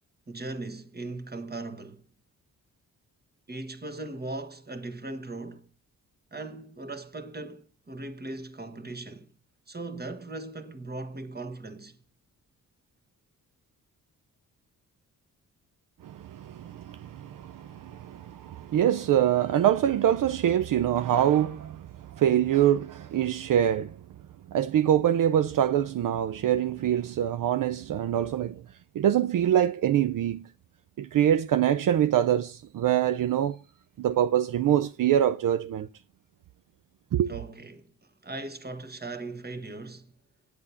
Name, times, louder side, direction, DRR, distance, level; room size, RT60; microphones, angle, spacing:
voice 1, 0.3-2.0 3.5-5.7 6.3-9.3 9.7-12.0 37.3-40.1, right 2 dB, 25° right, 1.5 m, -39 dB
voice 2, 16.0-24.0 24.5-28.6 28.9-30.4 31.0-33.6 34.0-35.9 37.1-37.4, right 10 dB, 65° right, 0.6 m, -24 dB
8.8 x 8.6 x 5.7 m
cardioid pair, 75°, 35 cm